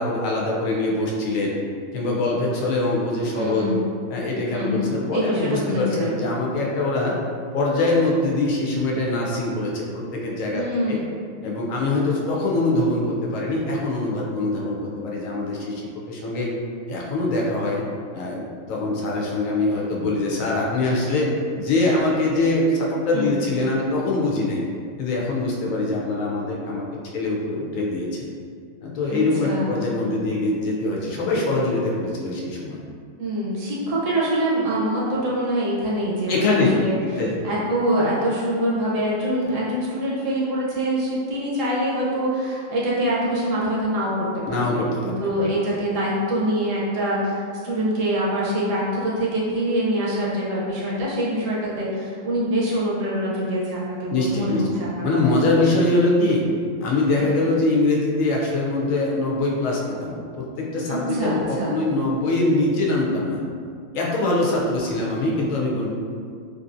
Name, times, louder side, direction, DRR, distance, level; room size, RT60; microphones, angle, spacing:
voice 1, 0.0-1.6 1.9-3.7 4.1-7.2 7.5-11.0 11.4-16.5 16.9-17.9 18.1-21.3 21.6-24.6 25.0-26.8 27.1-28.2 28.8-32.8 36.3-36.7 37.0-37.4 44.5-45.3 54.1-54.7 55.0-56.4 56.8-63.4 63.9-65.9, left 2 dB, 85° left, -3 dB, 1.0 m, -23 dB
voice 2, 3.4-3.8 4.5-4.9 5.1-6.1 10.5-11.0 23.1-23.3 29.1-29.7 33.2-36.9 37.4-55.2 57.2-57.3 60.9-61.8, equal, 75° right, -6 dB, 1.1 m, -24 dB
3.3 x 2.6 x 2.5 m, 2.2 s
omnidirectional pair, 1.4 m